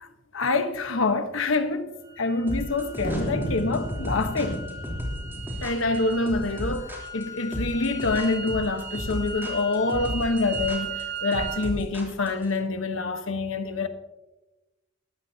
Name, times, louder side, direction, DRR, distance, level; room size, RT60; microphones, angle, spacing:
voice 1, 0.0-4.6 5.6-13.9, left 3 dB, 80° left, 1.1 m, -26 dB
sound 1, 2.0-11.7, right 3 dB, 65° right, 3.2 m, -38 dB
sound 2, 2.5-12.5, equal, 10° right, 3.3 m, -34 dB
sound 3, 3.0-6.6, equal, 40° left, 2.6 m, -33 dB
19.5 x 14.5 x 2.8 m
head